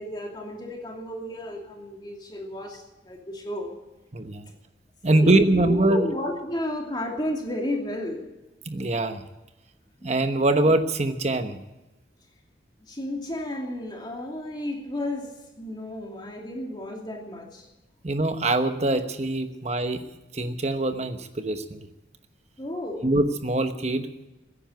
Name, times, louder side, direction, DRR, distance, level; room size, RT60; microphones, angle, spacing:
voice 1, 0.0-3.7 5.1-8.2 10.0-10.1 12.9-15.3 15.6-17.7 22.6-23.1, left 1 dB, 25° left, 1 dB, 2.7 m, -32 dB
voice 2, 4.1-4.5 5.0-6.1 8.7-9.2 10.0-11.6 18.0-20.0 20.3-21.8 23.0-24.1, right 2 dB, 35° right, 9 dB, 1.1 m, -23 dB
15.0 x 10.0 x 9.1 m, 1.0 s
head